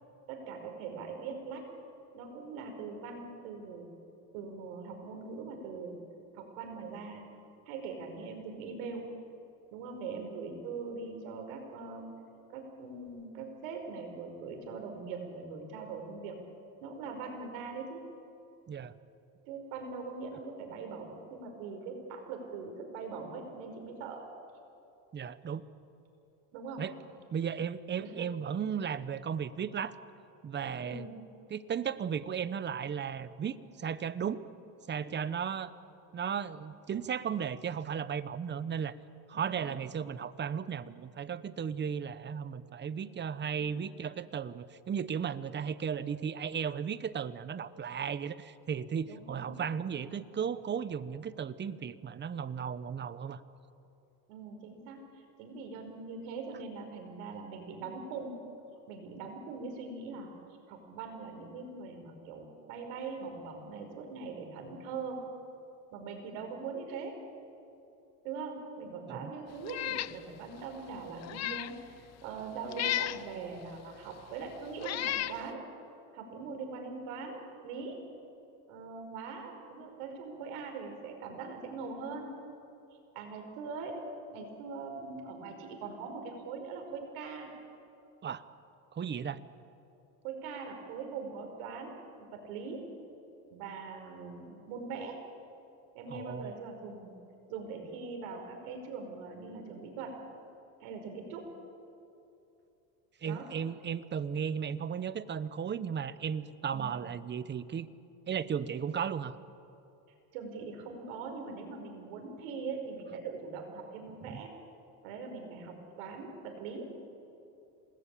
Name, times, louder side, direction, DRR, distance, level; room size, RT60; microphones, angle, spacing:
voice 1, 0.3-1.6 2.1-3.9 4.3-6.0 6.3-7.2 7.7-9.1 9.7-12.1 12.5-16.3 16.8-18.0 19.4-24.2 26.5-26.8 28.0-28.3 30.8-31.2 39.3-39.7 43.6-43.8 49.1-49.6 54.3-58.4 58.9-60.3 60.7-65.2 65.9-67.1 68.2-75.6 76.1-78.0 78.7-82.3 83.1-83.9 84.3-87.5 90.2-92.8 93.5-95.2 95.9-97.1 97.5-100.2 100.8-101.4 103.2-103.5 106.7-107.0 110.3-114.5 115.0-116.9, right 4 dB, 85° right, 4 dB, 5.4 m, -42 dB
voice 2, 25.1-25.6 26.8-26.9 27.3-30.0 30.4-31.1 31.5-34.4 34.9-35.7 36.1-39.0 39.3-53.4 69.1-69.3 88.2-88.5 88.9-89.4 96.1-96.6 103.2-107.9 108.3-109.4 114.2-114.4, right 7 dB, 25° right, 15 dB, 1.0 m, -35 dB
Meow, 69.6-70.2 70.6-70.7 71.2-71.7 72.7-73.2 74.1-74.2 74.8-75.4, left 13 dB, 40° left, 0.7 m, -33 dB
27.5 x 19.5 x 8.6 m, 2.8 s
supercardioid pair, 115°, 41 cm